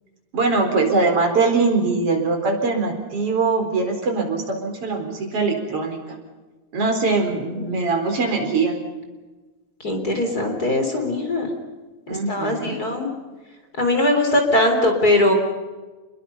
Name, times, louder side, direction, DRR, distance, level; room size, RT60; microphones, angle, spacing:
voice 1, 0.3-6.0 6.7-8.8 12.1-12.8, right 3 dB, 50° right, 2 dB, 5.2 m, -22 dB
voice 2, 9.8-11.5 12.3-13.1 13.8-15.3, left 1 dB, 30° left, 4 dB, 4.0 m, -20 dB
28.0 x 22.0 x 5.6 m, 1.3 s
omnidirectional pair, 3.4 m